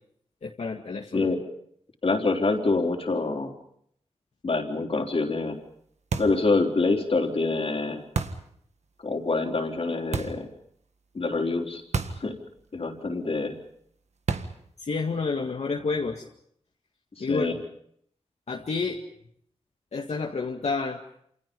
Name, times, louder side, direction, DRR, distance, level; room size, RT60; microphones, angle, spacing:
voice 1, 0.4-1.3 14.8-16.2 17.2-17.5 18.5-19.0 19.9-21.0, left 4 dB, 75° left, 0 dB, 2.1 m, -29 dB
voice 2, 2.0-3.5 4.4-5.6 6.2-8.0 9.0-10.5 11.1-11.8 12.2-12.4 12.7-13.6 17.2-17.6, left 3 dB, 55° left, 3 dB, 3.9 m, -26 dB
sound 1, 6.1-6.5 8.1-8.5 10.1-10.5 11.9-12.3 12.6-12.7 14.3-14.7, right 5 dB, 75° right, 1.7 m, -30 dB
28.5 x 28.0 x 5.4 m, 0.68 s
wide cardioid pair, 80°, 11 cm